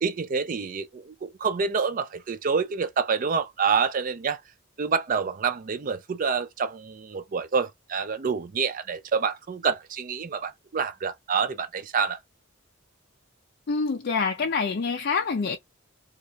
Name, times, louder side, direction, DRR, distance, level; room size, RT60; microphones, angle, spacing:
voice 1, 0.0-4.4 4.8-12.2, right 5 dB, 40° right, 0.4 m, -27 dB
voice 2, 13.7-15.6, left 4 dB, 50° left, 0.4 m, -26 dB
3.1 x 2.3 x 2.7 m
head